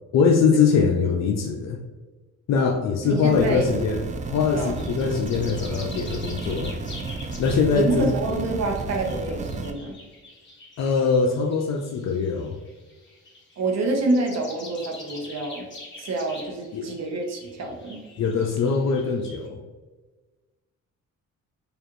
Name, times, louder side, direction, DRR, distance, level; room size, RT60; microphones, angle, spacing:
voice 1, 0.1-1.8 2.5-6.8 7.4-8.1 10.8-12.6 16.7-16.9 18.2-19.6, left 5 dB, 60° left, 2 dB, 0.5 m, -22 dB
voice 2, 3.0-3.7 4.5-4.8 7.7-9.9 13.6-15.6 16.0-18.0, right 2 dB, 60° right, 2 dB, 1.0 m, -27 dB
sound 1, 3.3-9.7, right 3 dB, 25° right, 0.4 m, -32 dB
sound 2, 4.3-19.5, left 2 dB, 40° left, 1.2 m, -45 dB
4.9 x 2.5 x 3.0 m, 1.3 s
cardioid pair, 90°, 30 cm